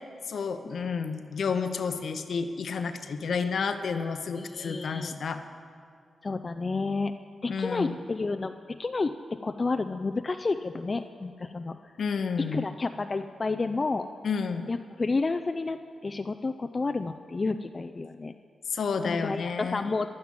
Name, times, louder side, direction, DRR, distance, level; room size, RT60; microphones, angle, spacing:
voice 1, 0.3-5.4 7.5-8.0 12.0-12.7 14.2-14.7 18.7-19.9, left 5 dB, 70° left, 8 dB, 0.8 m, -30 dB
voice 2, 4.3-5.2 6.2-7.1 7.4-8.5 8.8-9.1 9.4-11.8 12.5-14.1 14.7-18.3 19.0-20.1, left 3 dB, 40° left, 8 dB, 0.4 m, -30 dB
11.0 x 9.5 x 7.3 m, 2.2 s
supercardioid pair, 45°, 0 cm